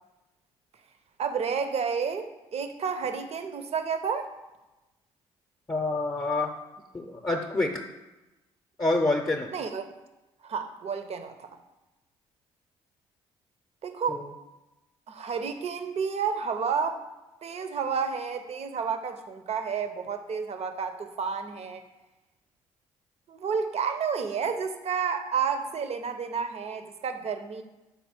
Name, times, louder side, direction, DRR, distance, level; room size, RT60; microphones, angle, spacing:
voice 1, 1.2-4.3 9.5-9.8 10.4-11.5 13.8-14.3 15.1-17.0 17.4-21.8 23.3-27.6, right 6 dB, 50° right, 8 dB, 0.8 m, -30 dB
voice 2, 5.7-6.5 6.9-7.8 8.8-9.5 14.1-14.3, left 2 dB, 25° left, 3 dB, 0.8 m, -27 dB
5.7 x 4.1 x 6.0 m, 1.0 s
hypercardioid pair, 50°, 13 cm